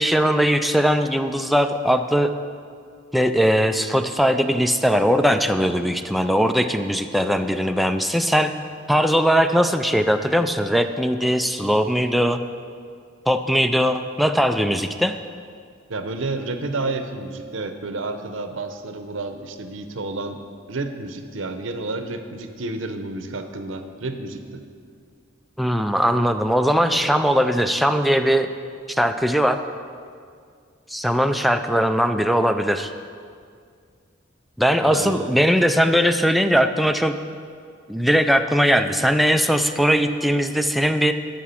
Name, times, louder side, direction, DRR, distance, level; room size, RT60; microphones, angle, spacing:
voice 1, 0.0-2.3 3.1-8.5 8.9-12.4 13.3-15.2 25.6-28.5 28.9-29.6 30.9-32.9 34.6-37.2 37.9-41.1, equal, ahead, 7 dB, 0.3 m, -20 dB
voice 2, 15.9-20.4 20.7-24.6 34.8-35.3, right 2 dB, 85° right, 7 dB, 0.8 m, -30 dB
13.0 x 6.0 x 5.7 m, 2.2 s
head